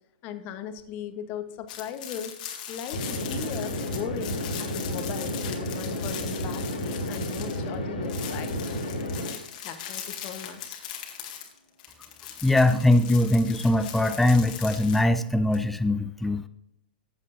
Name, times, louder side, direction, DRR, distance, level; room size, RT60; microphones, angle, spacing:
voice 1, 0.2-2.3 2.7-8.6 9.6-10.8, left 8 dB, 35° left, 9 dB, 1.1 m, -38 dB
sound 1, 1.7-7.7 8.0-15.6, left 9 dB, 55° left, 1.8 m, -40 dB
sound 2, 2.9-9.3, left 1 dB, 70° left, 3.1 m, -31 dB
voice 2, 12.4-16.5, left 1 dB, 5° left, 11 dB, 0.4 m, -22 dB
15.0 x 7.3 x 2.6 m, 0.79 s
figure-of-eight pair, 110°, 5 cm